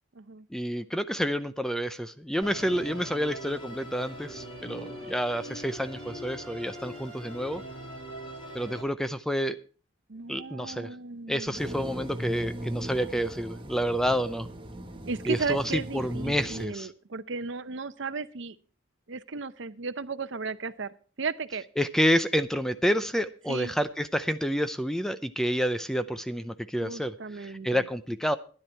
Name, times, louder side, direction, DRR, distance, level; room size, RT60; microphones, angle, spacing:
voice 1, 0.5-7.6 8.5-9.6 10.3-10.9 11.3-14.5 15.3-16.9 21.8-28.4, equal, ahead, 12 dB, 0.5 m, -29 dB
Musical instrument, 2.4-8.8, equal, 25° left, 3.1 m, -41 dB
voice 2, 10.1-11.6 15.1-18.6 19.1-21.6 23.5-23.7 26.8-27.9, right 4 dB, 60° right, 14 dB, 0.7 m, -35 dB
sound 1, 11.5-16.7, right 1 dB, 25° right, 1.3 m, -38 dB
13.0 x 10.5 x 4.4 m, 0.40 s
head